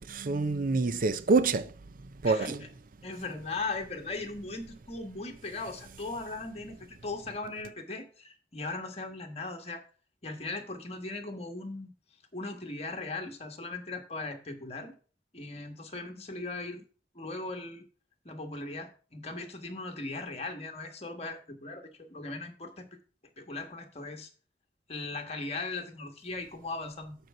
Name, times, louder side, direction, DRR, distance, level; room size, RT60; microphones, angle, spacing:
voice 1, 0.1-1.7 2.2-2.6, right 3 dB, 50° right, 0.6 m, -26 dB
voice 2, 3.0-9.8 10.2-11.9 12.3-14.9 15.3-16.8 17.1-17.8 18.2-22.9 23.4-24.3 24.9-27.2, left 3 dB, 35° left, 1.4 m, -38 dB
8.0 x 4.6 x 5.9 m
head